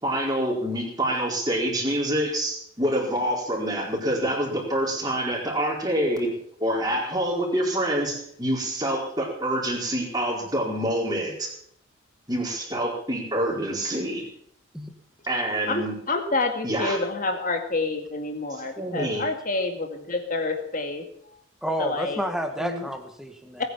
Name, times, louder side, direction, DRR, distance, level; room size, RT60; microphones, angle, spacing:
voice 1, 0.0-6.3 6.6-11.5 12.3-14.3 15.3-16.0 16.6-17.0 18.5-19.2, right 1 dB, 20° right, -1 dB, 4.6 m, -26 dB
voice 2, 15.7-21.0 21.8-22.2 22.6-22.9 23.6-23.7, left 3 dB, 40° left, 5 dB, 2.3 m, -28 dB
voice 3, 21.6-23.6, equal, ahead, 6 dB, 1.8 m, -30 dB
19.5 x 9.8 x 7.2 m, 0.68 s
head